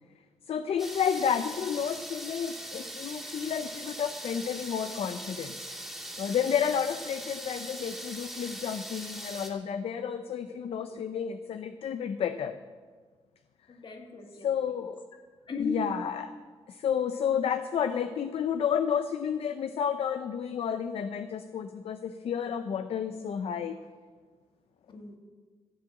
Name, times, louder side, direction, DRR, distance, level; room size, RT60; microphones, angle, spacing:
voice 1, 0.5-5.6 6.2-12.6 14.4-15.0 15.6-16.3 16.7-23.8, left 8 dB, 60° left, 10 dB, 0.6 m, -31 dB
sound 1, 0.8-9.5, right 1 dB, ahead, 2.6 m, -41 dB
voice 2, 13.7-14.5 15.5-15.8 24.9-25.2, left 5 dB, 45° left, 3 dB, 2.0 m, -36 dB
14.0 x 7.7 x 7.6 m, 1.5 s
cardioid pair, 125°, 11 cm